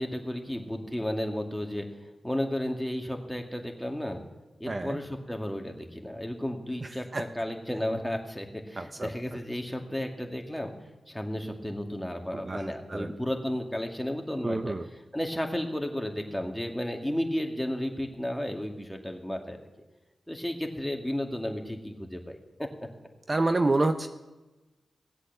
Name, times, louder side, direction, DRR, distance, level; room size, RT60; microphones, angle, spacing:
voice 1, 0.0-1.9 2.2-4.2 4.6-10.7 11.1-14.6 15.1-19.7 20.3-22.7, left 1 dB, 5° left, 2 dB, 2.3 m, -33 dB
voice 2, 4.7-5.0 6.8-7.2 8.8-9.1 12.3-13.2 14.4-14.9 23.3-24.1, right 2 dB, 40° right, 8 dB, 0.8 m, -28 dB
17.5 x 8.1 x 6.9 m, 1.1 s
cardioid pair, 45°, 0 cm